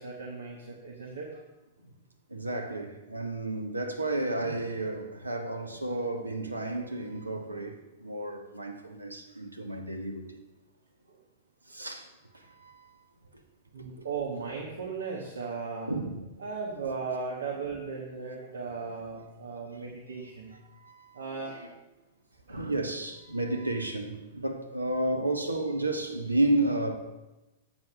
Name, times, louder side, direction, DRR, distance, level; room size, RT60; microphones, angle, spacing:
voice 1, 0.0-1.4 2.5-2.6 11.1-11.2 13.7-15.9 16.4-20.6 21.1-21.6 22.5-22.6, right 4 dB, 65° right, 1.3 m, -37 dB
voice 2, 2.3-10.4 11.7-12.9 13.8-14.1 15.9-16.2 19.9-20.0 20.8-21.2 21.5-21.7 22.5-27.0, right 2 dB, 90° right, 1.0 m, -32 dB
7.7 x 6.2 x 6.4 m
figure-of-eight pair, 100°, 0 cm